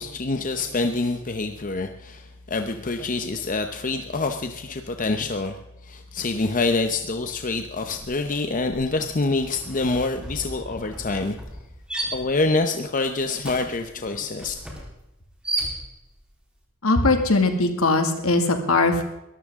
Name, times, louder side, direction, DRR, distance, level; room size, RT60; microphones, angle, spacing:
voice 1, 0.0-11.4 12.1-14.5, left 3 dB, 40° left, 6 dB, 0.8 m, -26 dB
sound 1, 7.2-7.5 7.8-16.2, right 1 dB, 5° right, 3.8 m, -35 dB
voice 2, 16.8-19.0, left 2 dB, 70° left, 5 dB, 2.2 m, -20 dB
22.0 x 13.5 x 3.7 m, 0.89 s
head